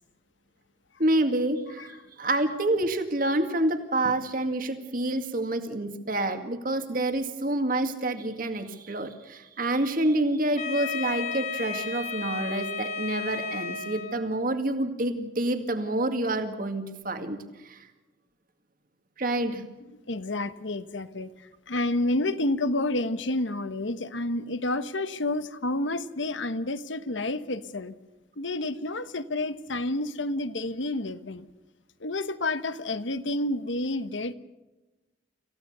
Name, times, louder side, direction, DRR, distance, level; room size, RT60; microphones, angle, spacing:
voice 1, 1.0-17.4 17.6-17.9 19.2-19.7, right 1 dB, 45° right, 7 dB, 2.1 m, -28 dB
Wind instrument woodwind instrument, 10.6-14.4, left 5 dB, 40° left, 2.4 m, -33 dB
voice 2, 20.1-21.3 21.7-27.9 28.4-31.4 32.0-34.3, left 2 dB, 80° left, 13 dB, 1.2 m, -29 dB
27.0 x 16.0 x 6.8 m, 1.1 s
head